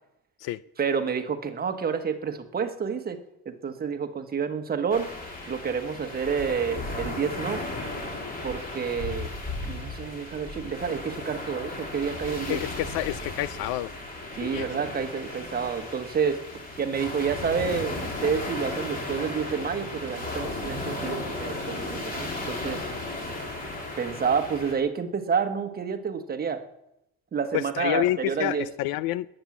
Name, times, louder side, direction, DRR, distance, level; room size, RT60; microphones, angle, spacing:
voice 1, 0.8-3.2 3.4-5.1 5.5-7.6 8.4-9.3 9.6-12.6 14.3-16.4 16.8-22.8 24.0-26.6 27.3-28.6, right 6 dB, 25° right, 7 dB, 1.3 m, -29 dB
sound 1, 4.9-24.7, left 2 dB, 25° left, 3.4 m, -35 dB
voice 2, 12.5-13.9 14.4-14.7 27.5-29.3, left 15 dB, 80° left, 17 dB, 0.6 m, -28 dB
20.5 x 8.9 x 7.3 m, 0.85 s
cardioid pair, 160°, 37 cm